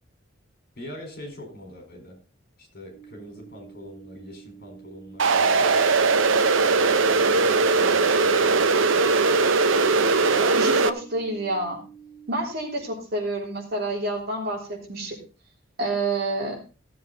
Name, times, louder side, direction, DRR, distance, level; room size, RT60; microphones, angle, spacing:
voice 1, 0.8-2.2 2.6-5.6 7.1-8.7, left 1 dB, 55° left, 3 dB, 4.4 m, -43 dB
sound 1, 2.9-12.9, right 7 dB, 20° right, 5.6 m, -48 dB
sound 2, 5.2-10.9, right 4 dB, 85° right, 0.7 m, -20 dB
voice 2, 10.3-11.8 12.3-15.2 15.8-16.6, right 2 dB, 55° right, 0 dB, 3.6 m, -28 dB
16.0 x 7.7 x 4.0 m, 0.33 s
head